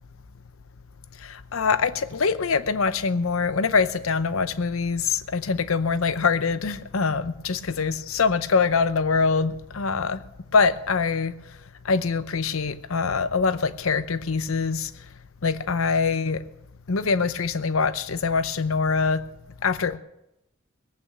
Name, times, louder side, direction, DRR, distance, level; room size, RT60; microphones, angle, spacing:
voice 1, 1.5-10.2 10.5-11.3 11.9-14.9 15.4-16.4 16.9-19.2 19.6-20.0, left 5 dB, 85° left, 0.7 m, -24 dB
18.5 x 8.7 x 7.0 m
head